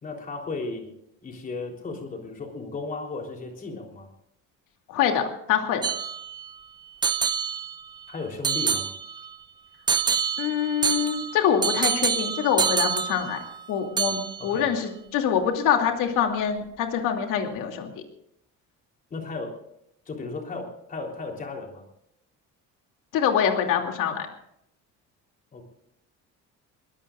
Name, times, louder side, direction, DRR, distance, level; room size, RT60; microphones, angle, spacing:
voice 1, 0.0-0.9 1.2-4.1 8.1-8.9 14.4-14.7 19.1-19.6 20.1-21.8 25.5-25.6, left 3 dB, 25° left, 1 dB, 3.7 m, -35 dB
voice 2, 4.9-5.2 5.5-5.8 10.4-13.4 13.7-17.9 23.1-24.3, left 8 dB, 85° left, 4 dB, 2.8 m, -25 dB
sound 1, 5.8-6.5 7.0-8.0 8.4-9.4 9.9-13.7 14.0-14.6, right 6 dB, 15° right, 0.6 m, -27 dB
22.5 x 19.0 x 2.5 m, 0.76 s
cardioid pair, 180°, 31 cm